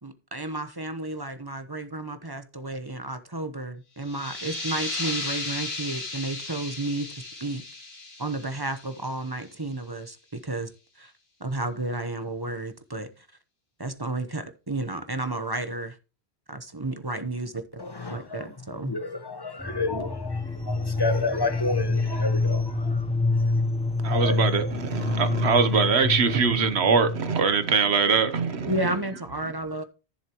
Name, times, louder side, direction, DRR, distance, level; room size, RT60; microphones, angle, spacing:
voice 1, 0.0-7.1 7.4-7.6 8.2-10.7 11.0-11.1 11.4-13.3 13.8-16.0 16.5-17.6 18.1-18.9 28.7-29.8, right 2 dB, 25° right, 1.0 m, -32 dB
sound 1, 4.0-9.4, left 2 dB, 65° left, 2.5 m, -35 dB
voice 2, 17.8-18.5 18.8-23.0 23.4-23.5 24.1-24.6 24.9-25.6 25.9-26.5, left 3 dB, 25° left, 1.1 m, -32 dB
sound 2, 19.6-27.4, left 3 dB, 5° left, 0.7 m, -27 dB
voice 3, 24.0-28.7, right 5 dB, 75° right, 1.3 m, -23 dB
14.0 x 7.3 x 3.0 m
omnidirectional pair, 1.1 m